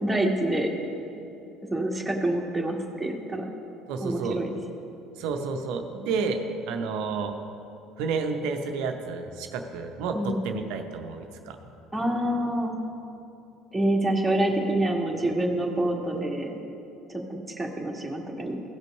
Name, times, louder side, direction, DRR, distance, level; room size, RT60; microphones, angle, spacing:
voice 1, 0.0-0.7 1.7-3.5 4.0-4.5 10.1-10.4 11.9-12.8 13.7-16.5 17.3-18.5, right 1 dB, 5° right, -1 dB, 1.7 m, -26 dB
voice 2, 3.9-4.4 5.2-7.4 8.0-11.6, right 4 dB, 65° right, 5 dB, 0.6 m, -30 dB
15.5 x 5.3 x 5.3 m, 2.8 s
hypercardioid pair, 60°, 0 cm